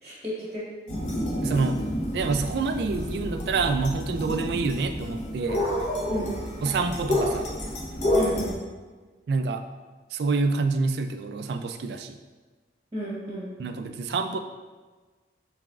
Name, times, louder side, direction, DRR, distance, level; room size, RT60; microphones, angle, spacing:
voice 1, 0.0-0.7 6.1-6.4 8.2-8.6 12.9-13.5, equal, 25° right, -6 dB, 0.9 m, -32 dB
sound 1, 0.9-8.5, left 1 dB, 40° left, 0.6 m, -29 dB
voice 2, 1.4-1.8 2.1-5.6 6.6-7.5 9.3-9.6 10.1-12.2 13.6-14.4, right 4 dB, 65° right, 8 dB, 0.3 m, -27 dB
5.9 x 3.4 x 2.4 m, 1.3 s
head